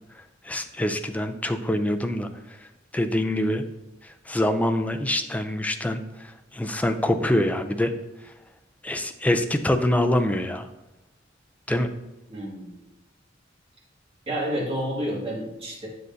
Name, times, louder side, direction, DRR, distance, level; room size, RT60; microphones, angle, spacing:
voice 1, 0.4-2.3 2.9-3.7 4.0-7.9 8.8-10.7 11.7-11.9, left 1 dB, 10° left, 7 dB, 0.4 m, -25 dB
voice 2, 12.3-12.7 14.3-15.9, equal, 30° right, -5 dB, 1.9 m, -29 dB
7.8 x 6.3 x 2.6 m, 0.95 s
head